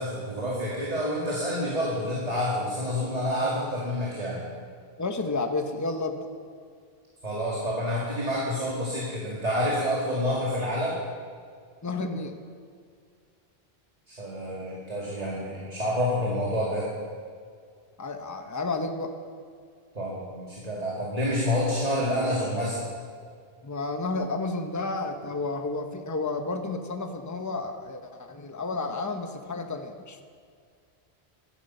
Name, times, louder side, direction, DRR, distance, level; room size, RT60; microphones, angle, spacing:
voice 1, 0.0-4.4 7.2-11.0 14.1-16.8 19.9-22.8, left 1 dB, 35° right, -5 dB, 2.4 m, -28 dB
voice 2, 5.0-6.3 11.8-12.4 18.0-19.1 23.6-30.2, left 3 dB, 15° left, 5 dB, 0.9 m, -31 dB
15.5 x 12.5 x 5.5 m, 2.1 s
omnidirectional pair, 1.1 m